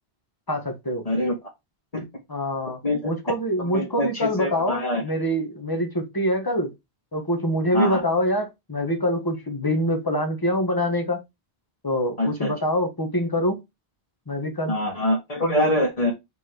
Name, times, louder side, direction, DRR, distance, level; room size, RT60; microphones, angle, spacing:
voice 1, 0.5-1.0 2.3-6.7 7.1-11.2 11.8-13.6 14.3-14.7, equal, 20° left, 1.5 m, -25 dB
voice 2, 3.6-5.0 7.7-8.0 12.2-12.5 14.7-16.1, left 1 dB, 35° left, 2.0 m, -24 dB
5.2 x 4.5 x 4.5 m
omnidirectional pair, 1.0 m